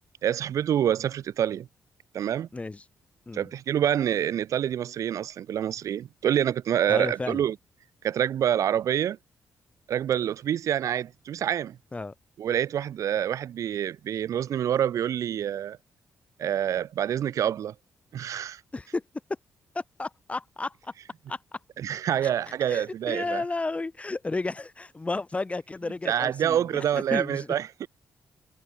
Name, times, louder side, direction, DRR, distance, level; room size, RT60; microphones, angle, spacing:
voice 1, 0.2-1.7 2.1-2.5 3.3-7.6 8.0-9.2 9.9-11.8 12.4-15.8 16.4-17.7 18.1-18.6 21.8-23.4 26.1-27.9, right 10 dB, 70° right, 0.6 m, -27 dB
voice 2, 2.5-2.8 3.3-3.5 6.9-7.4 11.9-12.1 18.7-19.0 19.7-20.9 21.3-21.4 22.2-22.3 22.7-26.8 27.1-27.5, left 3 dB, 20° left, 0.8 m, -32 dB
cardioid pair, 70°, 6 cm